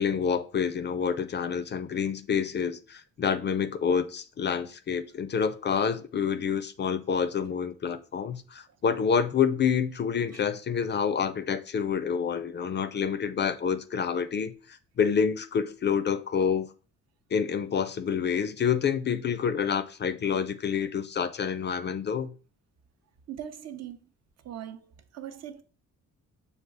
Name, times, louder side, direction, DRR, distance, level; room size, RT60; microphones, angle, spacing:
voice 1, 0.0-16.7 17.3-22.3, left 7 dB, 35° left, 0.4 m, -28 dB
voice 2, 23.3-24.0 24.4-25.6, right 10 dB, 55° right, 0.6 m, -40 dB
6.5 x 2.3 x 3.3 m
cardioid pair, 90°, 30 cm